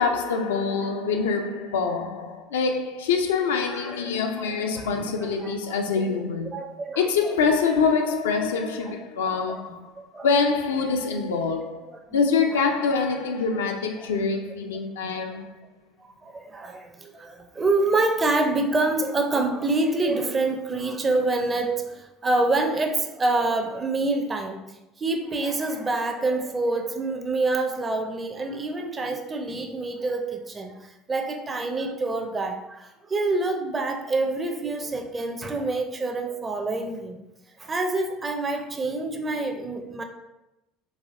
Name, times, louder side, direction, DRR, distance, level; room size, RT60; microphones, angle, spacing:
voice 1, 0.0-6.6 7.0-9.9 10.2-15.5, left 5 dB, 75° left, 0.3 m, -25 dB
voice 2, 3.7-4.1 4.5-4.6 5.0-6.1 6.5-7.3 9.5-9.6 10.1-10.3 12.1-12.2 12.5-12.7 14.0-14.1 16.0-24.7 25.0-37.2 37.6-40.0, right 2 dB, 25° right, 0.5 m, -27 dB
4.1 x 2.8 x 2.5 m
figure-of-eight pair, 65°, 0 cm